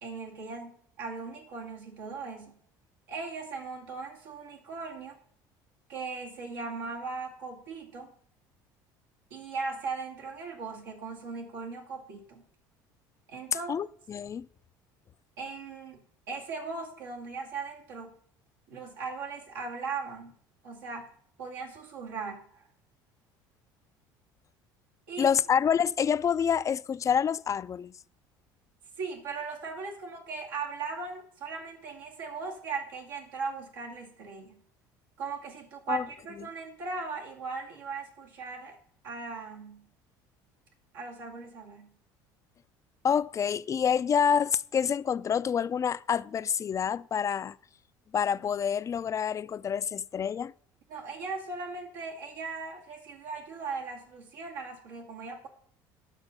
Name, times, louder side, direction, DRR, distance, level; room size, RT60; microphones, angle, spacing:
voice 1, 0.0-2.6 3.1-5.2 5.9-8.1 9.3-12.5 13.3-13.8 15.4-18.1 18.7-20.3 20.6-21.1 21.4-22.7 25.1-25.3 29.0-34.6 35.2-38.8 39.0-39.9 40.9-41.9 50.9-55.5, right 4 dB, 85° right, 2.2 m, -38 dB
voice 2, 13.7-14.5 25.2-27.9 35.9-36.0 43.0-47.6 48.1-50.5, left 7 dB, 30° left, 0.4 m, -27 dB
9.8 x 6.1 x 5.5 m
supercardioid pair, 80°, 10 cm